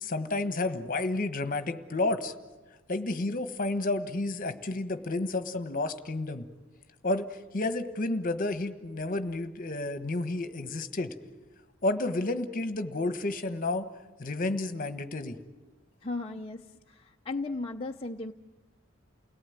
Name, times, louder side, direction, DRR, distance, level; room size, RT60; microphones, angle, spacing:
voice 1, 0.0-2.3 2.9-6.4 7.0-11.1 11.8-13.9 14.2-15.4, left 2 dB, 40° left, 10 dB, 1.4 m, -31 dB
voice 2, 16.0-18.3, left 3 dB, 25° left, 1 dB, 0.7 m, -36 dB
29.5 x 18.0 x 9.4 m, 1.2 s
head